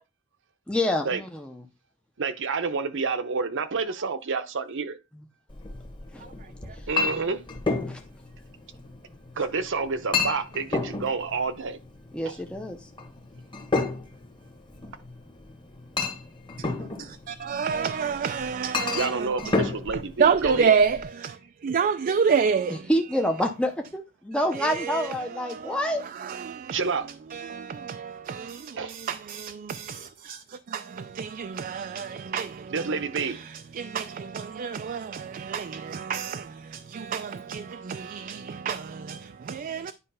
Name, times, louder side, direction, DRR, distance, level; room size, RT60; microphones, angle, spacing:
voice 1, 0.7-1.3 7.9-8.0 12.1-12.8 22.9-26.0, equal, 5° left, 0.6 m, -27 dB
voice 2, 2.2-5.0 6.9-7.4 9.4-11.8 12.2-12.4 18.9-20.7 26.7-27.0 28.8-29.0 32.7-33.4, right 4 dB, 60° right, 0.8 m, -28 dB
Chink clink, 5.5-21.0, left 3 dB, 20° left, 1.2 m, -32 dB
voice 3, 6.2-6.8 16.8-23.2 24.3-26.8 27.3-39.9, right 6 dB, 40° right, 0.4 m, -29 dB
9.6 x 3.2 x 5.5 m
head